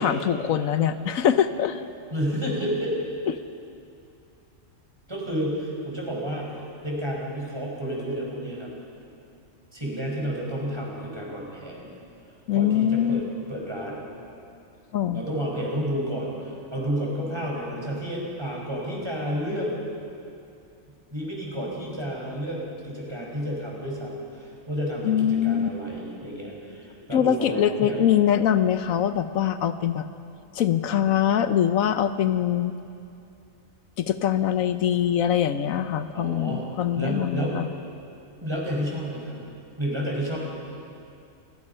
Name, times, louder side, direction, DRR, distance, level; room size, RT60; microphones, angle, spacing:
voice 1, 0.0-1.8 12.5-13.2 14.9-15.2 25.0-25.7 27.1-30.0 30.5-32.7 34.0-37.7, left 9 dB, 85° left, 10 dB, 1.2 m, -23 dB
voice 2, 2.1-3.0 5.1-8.7 9.7-11.9 12.5-13.2 13.5-14.1 15.1-19.8 21.1-28.1 36.1-36.6 37.0-37.7 38.4-39.4 39.8-40.4, equal, 20° right, -2 dB, 5.0 m, -31 dB
28.5 x 17.5 x 5.6 m, 2.5 s
omnidirectional pair, 1.4 m